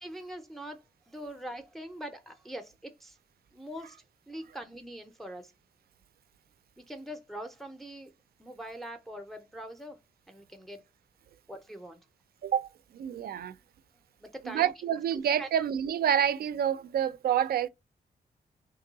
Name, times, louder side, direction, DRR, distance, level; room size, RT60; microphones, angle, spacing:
voice 1, 0.0-3.2 3.5-4.0 4.3-5.5 6.8-8.1 8.4-10.0 10.3-10.8 11.5-12.0 14.2-14.7 15.4-15.5, right 1 dB, ahead, 0.4 m, -43 dB
voice 2, 12.9-13.6 14.4-17.7, right 9 dB, 75° right, 0.4 m, -28 dB
3.0 x 2.7 x 3.9 m
wide cardioid pair, 150°, 16 cm